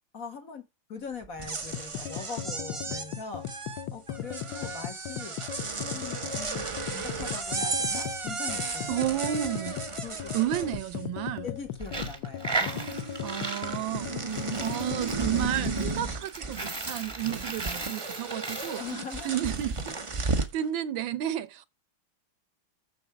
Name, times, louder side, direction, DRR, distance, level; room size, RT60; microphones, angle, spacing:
voice 1, 0.1-0.6 0.9-3.5 3.9-5.4 5.8-9.0 10.0-10.6 11.4-12.9 18.8-19.4, left 5 dB, 45° left, 2.0 m, -41 dB
sound 1, 1.2-11.3 11.6-12.3 12.5-20.6, right 4 dB, 45° right, 0.4 m, -34 dB
sound 2, 1.7-16.0, left 10 dB, 80° left, 1.5 m, -37 dB
voice 2, 8.9-9.8 10.3-11.5 13.2-18.8 19.2-21.7, right 12 dB, 75° right, 1.5 m, -32 dB
Coin (dropping), 11.8-20.0, right 3 dB, 15° right, 1.0 m, -36 dB
7.2 x 6.8 x 6.1 m
omnidirectional pair, 2.1 m